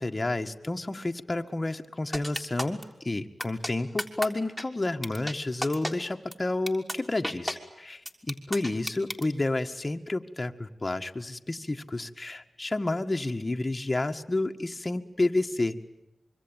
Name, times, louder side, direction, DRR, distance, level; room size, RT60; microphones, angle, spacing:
voice 1, 0.0-15.9, left 2 dB, 30° left, 5 dB, 1.8 m, -30 dB
sound 1, 2.1-2.8 3.4-3.7 4.0-4.3 4.6-4.7 5.0-5.3 5.6-5.9 6.3-6.4 6.7-6.9 7.2-7.5 8.1-9.2, equal, 5° right, 3.6 m, -31 dB
25.5 x 24.0 x 9.1 m, 0.90 s
cardioid pair, 65°, 0 cm